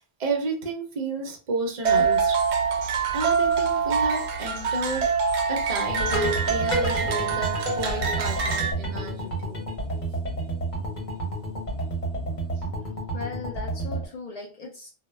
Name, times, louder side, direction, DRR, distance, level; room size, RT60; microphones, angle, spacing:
voice 1, 0.2-2.4 3.1-9.6, right 3 dB, 45° right, 2 dB, 0.6 m, -32 dB
sound 1, 1.8-8.7, right 5 dB, 80° right, 0.9 m, -25 dB
sound 2, 5.8-14.1, right 1 dB, 45° left, 0.9 m, -30 dB
voice 2, 13.1-14.9, left 3 dB, 70° left, -1 dB, 0.3 m, -37 dB
2.1 x 2.1 x 3.1 m, 0.35 s
omnidirectional pair, 1.2 m